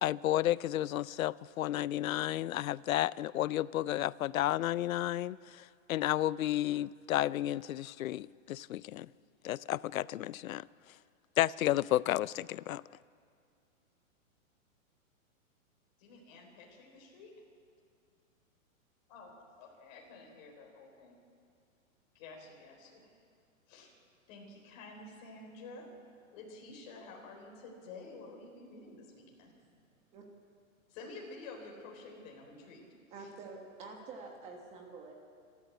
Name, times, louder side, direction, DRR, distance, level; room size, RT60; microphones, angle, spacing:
voice 1, 0.0-9.1 9.4-10.6 11.4-12.8, left 13 dB, 75° left, 0.6 m, -32 dB
voice 2, 16.0-17.3 19.1-21.2 22.1-23.1 23.7-23.9 24.3-25.9 26.3-29.5 30.9-32.9 33.2-33.3, left 3 dB, 30° left, 4.1 m, -50 dB
voice 3, 33.1-35.1, right 4 dB, 15° right, 1.5 m, -47 dB
27.0 x 13.0 x 8.3 m
hypercardioid pair, 170°, 41 cm